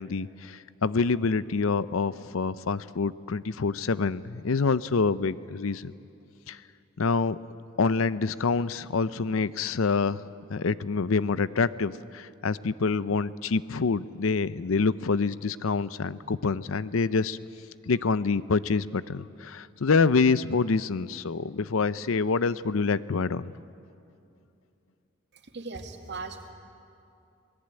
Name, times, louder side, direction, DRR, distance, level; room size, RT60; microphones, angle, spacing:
voice 1, 0.0-5.9 6.5-6.6 7.0-7.4 7.8-10.2 10.5-17.4 17.9-23.5, left 4 dB, 85° left, 16 dB, 0.6 m, -26 dB
voice 2, 25.3-26.5, right 3 dB, 55° right, 4 dB, 2.2 m, -39 dB
26.5 x 18.5 x 9.0 m, 2.6 s
head